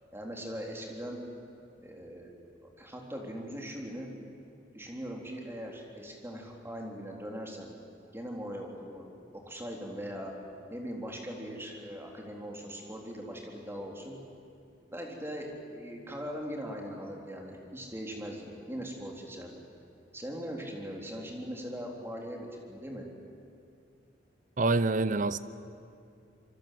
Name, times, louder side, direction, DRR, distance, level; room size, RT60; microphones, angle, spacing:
voice 1, 0.1-1.2 1.8-2.4 2.8-4.1 4.7-7.7 8.1-10.3 10.7-14.2 14.9-15.5 15.7-19.6 20.1-23.1, equal, 15° right, 3.8 m, -40 dB
voice 2, 24.6-25.4, right 3 dB, 50° right, 0.8 m, -26 dB
26.0 x 24.0 x 7.8 m
head